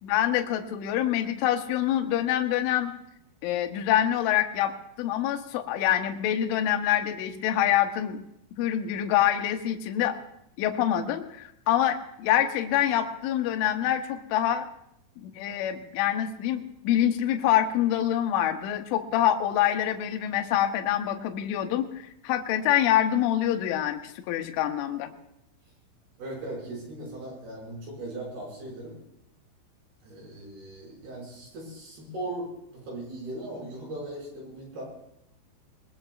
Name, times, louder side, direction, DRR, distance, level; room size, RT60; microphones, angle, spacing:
voice 1, 0.0-2.9 3.4-8.2 8.6-10.2 10.6-14.6 15.2-25.1, left 11 dB, 75° left, 5 dB, 3.2 m, -26 dB
voice 2, 26.2-29.0 30.0-34.8, right 1 dB, 50° right, -2 dB, 7.4 m, -38 dB
21.5 x 21.0 x 2.4 m, 0.77 s
omnidirectional pair, 5.9 m